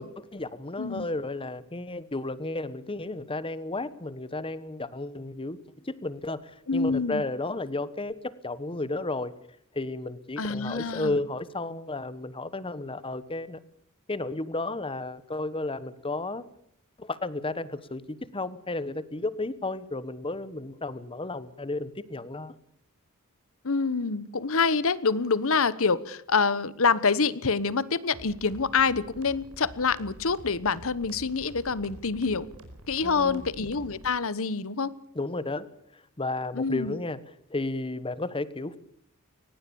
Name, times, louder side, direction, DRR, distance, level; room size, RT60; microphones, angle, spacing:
voice 1, 0.0-9.3 9.7-13.6 14.1-16.4 17.0-22.5 33.0-33.5 35.1-37.2 37.5-38.8, left 2 dB, 25° left, 16 dB, 1.2 m, -33 dB
voice 2, 6.7-7.2 10.4-11.2 23.6-32.5 32.9-34.9 36.5-37.0, left 4 dB, 65° left, 18 dB, 1.1 m, -26 dB
sound 1, 28.1-34.1, right 1 dB, 80° right, 5.0 m, -47 dB
23.0 x 19.5 x 7.1 m, 0.68 s
head